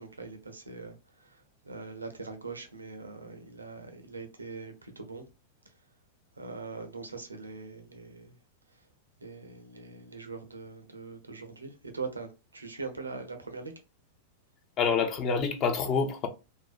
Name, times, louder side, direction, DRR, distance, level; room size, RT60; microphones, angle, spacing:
voice 1, 0.0-5.2 6.4-8.3 9.2-13.7, right 4 dB, 90° right, 0.5 m, -42 dB
voice 2, 14.8-16.3, left 5 dB, 35° left, 0.6 m, -27 dB
2.6 x 2.0 x 2.3 m
figure-of-eight pair, 95°, 0 cm